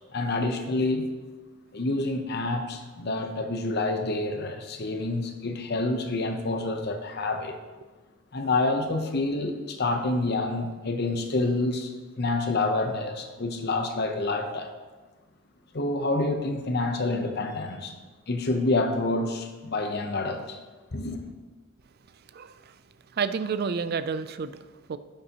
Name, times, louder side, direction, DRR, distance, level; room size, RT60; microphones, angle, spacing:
voice 1, 0.1-1.1 1.7-7.5 8.3-14.7 15.7-17.9 18.3-20.6 20.9-21.2, left 2 dB, 55° left, 6 dB, 0.8 m, -28 dB
voice 2, 22.3-22.8 23.1-25.0, right 5 dB, 50° right, 13 dB, 0.4 m, -30 dB
10.5 x 6.9 x 3.0 m, 1.3 s
head